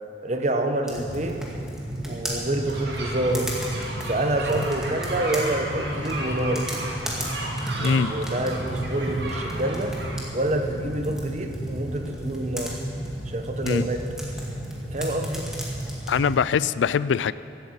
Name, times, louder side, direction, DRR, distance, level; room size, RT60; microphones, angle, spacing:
voice 1, 0.2-1.4 2.0-3.5 4.0-6.7 7.8-9.9 10.3-12.8 13.2-14.1 14.8-15.5, right 1 dB, 40° right, 5 dB, 1.1 m, -27 dB
sound 1, 0.9-16.4, right 1 dB, 5° right, 2.0 m, -32 dB
sound 2, 2.7-10.2, right 1 dB, 65° right, 2.1 m, -34 dB
voice 2, 7.8-8.1 13.7-13.8 16.1-17.3, left 6 dB, 90° left, 17 dB, 0.4 m, -22 dB
15.0 x 9.2 x 8.0 m, 2.8 s
head